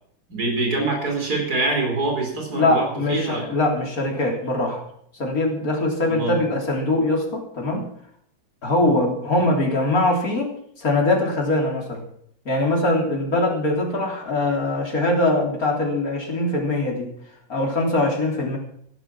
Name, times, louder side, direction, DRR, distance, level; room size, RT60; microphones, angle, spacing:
voice 1, 0.3-3.5 6.1-6.4, right 2 dB, 55° right, 2 dB, 4.7 m, -25 dB
voice 2, 2.5-4.8 5.2-7.9 8.6-10.5 10.8-12.0 12.5-17.1 17.5-18.6, left 2 dB, 50° left, 0 dB, 3.9 m, -22 dB
14.5 x 11.5 x 6.0 m, 0.67 s
omnidirectional pair, 2.0 m